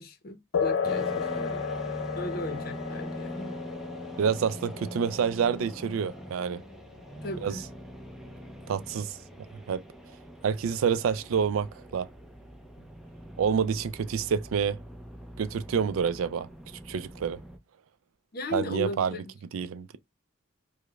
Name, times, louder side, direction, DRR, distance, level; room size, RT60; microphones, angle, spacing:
voice 1, 0.0-1.7 2.2-3.6 7.2-7.6 18.3-19.2, left 1 dB, 50° left, 0.7 m, -36 dB
sound 1, 0.5-8.5, left 6 dB, 90° left, 0.5 m, -34 dB
sound 2, 0.8-17.6, equal, ahead, 0.4 m, -43 dB
voice 2, 4.2-6.6 7.4-7.6 8.7-9.2 9.7-9.8 10.4-12.1 13.4-14.8 15.4-16.5 16.9-17.4 18.5-19.2 19.5-20.0, right 7 dB, 85° right, 0.4 m, -28 dB
4.7 x 2.1 x 2.3 m
head